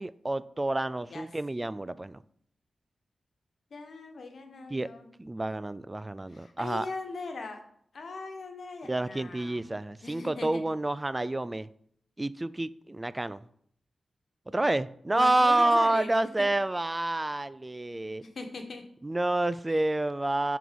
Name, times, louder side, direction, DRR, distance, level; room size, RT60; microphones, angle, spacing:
voice 1, 0.0-2.2 4.7-4.9 5.2-6.9 8.8-11.7 12.2-13.4 14.5-18.2 19.0-20.6, right 2 dB, 25° right, 0.3 m, -28 dB
voice 2, 3.7-5.1 6.3-7.6 7.9-9.6 10.0-10.6 15.1-16.5 18.2-18.8 19.7-19.9, left 3 dB, 70° left, 1.3 m, -40 dB
5.9 x 4.7 x 5.3 m
cardioid pair, 50°, 0 cm